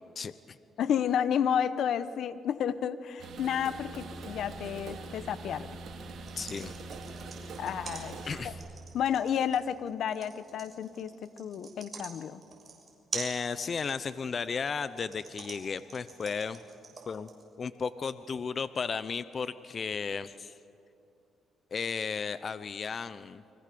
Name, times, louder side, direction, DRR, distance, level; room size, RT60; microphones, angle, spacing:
voice 1, 0.2-0.6 6.4-6.7 8.2-8.6 13.1-16.6 17.1-17.3 17.6-20.5 21.7-23.4, left 5 dB, 45° left, 13 dB, 0.8 m, -34 dB
voice 2, 0.8-5.7 7.6-8.2 8.4-8.5 8.9-12.4, left 8 dB, 70° left, 13 dB, 1.2 m, -31 dB
sound 1, 3.2-8.5, right 3 dB, 65° right, 4.2 m, -43 dB
sound 2, 6.2-17.4, right 4 dB, 35° right, 6.8 m, -44 dB
30.0 x 25.0 x 7.0 m, 2.7 s
cardioid pair, 90°, 0 cm